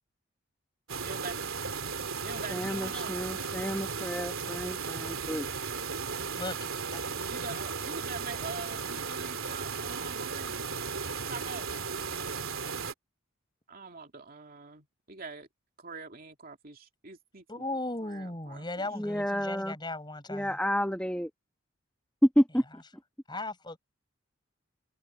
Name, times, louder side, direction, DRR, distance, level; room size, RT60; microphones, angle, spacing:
sound 1, 0.9-12.9, right 5 dB, 75° right, 2.7 m, -35 dB
voice 1, 1.0-1.5 2.2-3.2 7.3-10.6 11.3-11.7 13.7-15.5 15.8-17.7 18.0-18.9, right 4 dB, 45° right, 2.7 m, -44 dB
voice 2, 2.5-5.4 18.9-19.8 20.3-21.3 22.2-22.8, equal, 5° left, 1.5 m, -29 dB
voice 3, 6.4-7.0 17.5-20.6 23.3-23.8, left 2 dB, 20° left, 6.0 m, -37 dB
head